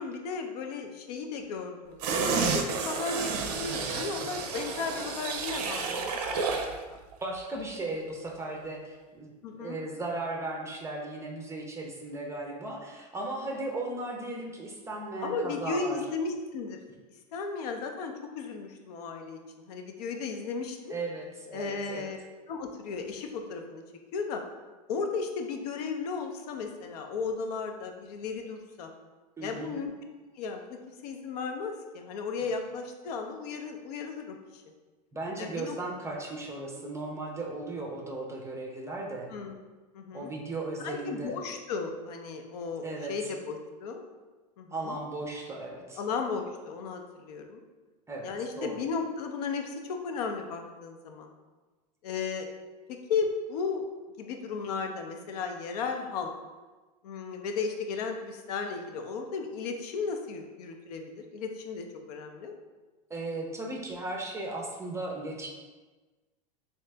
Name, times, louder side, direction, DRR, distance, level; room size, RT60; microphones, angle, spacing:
voice 1, 0.0-6.1 6.4-7.0 9.4-9.8 15.2-16.8 17.3-20.9 21.5-22.2 22.5-23.8 24.1-24.4 24.9-28.9 29.4-29.9 30.3-34.6 35.4-35.7 39.3-39.5 39.9-40.3 40.8-44.1 44.6-45.0 46.0-47.6 48.2-51.3 52.0-52.5 52.9-53.8 54.2-56.3 57.0-62.6, left 5 dB, 75° left, 4 dB, 0.6 m, -35 dB
sound 1, 2.0-6.8 7.1-7.2, right 5 dB, 80° right, 0.5 m, -31 dB
voice 2, 7.2-16.0 20.9-22.1 29.4-29.8 35.1-39.3 40.1-41.3 42.8-43.1 44.7-46.0 48.1-48.8 63.1-65.5, right 2 dB, 15° right, 0 dB, 0.5 m, -36 dB
3.1 x 2.8 x 3.3 m, 1.3 s
supercardioid pair, 110°, 20 cm